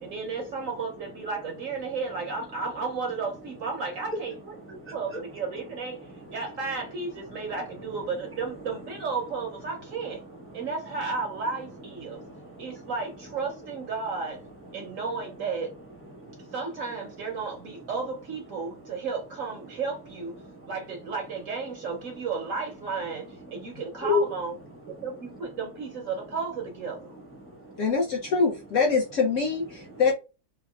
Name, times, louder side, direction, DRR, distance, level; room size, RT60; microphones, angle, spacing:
voice 1, 0.0-10.2 10.5-12.2 12.6-14.4 14.7-15.7 16.5-20.3 20.7-24.6 24.9-27.1, right 4 dB, 65° right, 0.8 m, -33 dB
voice 2, 12.0-12.9 16.1-16.5 20.4-20.7 24.0-24.2 27.4-27.8, left 7 dB, 10° left, 0.6 m, -32 dB
voice 3, 27.8-30.1, left 4 dB, 60° left, 0.8 m, -24 dB
3.5 x 2.1 x 2.3 m
omnidirectional pair, 1.8 m